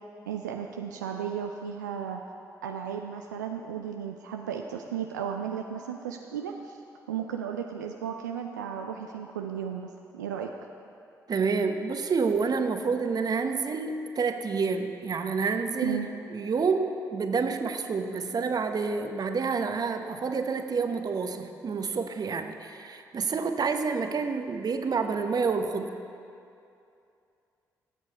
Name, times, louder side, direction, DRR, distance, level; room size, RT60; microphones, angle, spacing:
voice 1, 0.2-2.2 2.6-6.8 7.1-10.5 15.8-16.1, right 8 dB, 85° right, 3 dB, 0.4 m, -34 dB
voice 2, 11.3-16.0 16.3-25.9, right 5 dB, 45° right, 6 dB, 0.9 m, -28 dB
17.5 x 8.1 x 4.1 m, 2.6 s
figure-of-eight pair, 40°, 9 cm